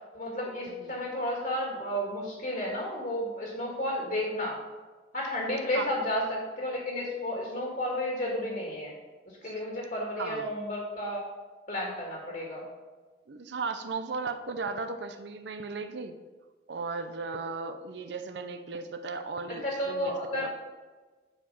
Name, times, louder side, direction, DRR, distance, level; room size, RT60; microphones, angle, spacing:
voice 1, 0.1-4.6 5.1-8.9 9.4-11.3 11.7-12.6 19.5-20.6, left 1 dB, 50° left, -3 dB, 1.9 m, -32 dB
voice 2, 0.7-1.0 5.7-5.9 9.4-9.5 10.2-10.5 13.3-16.1 16.7-20.5, right 4 dB, 75° right, 8 dB, 0.6 m, -36 dB
9.7 x 4.8 x 5.3 m, 1.3 s
head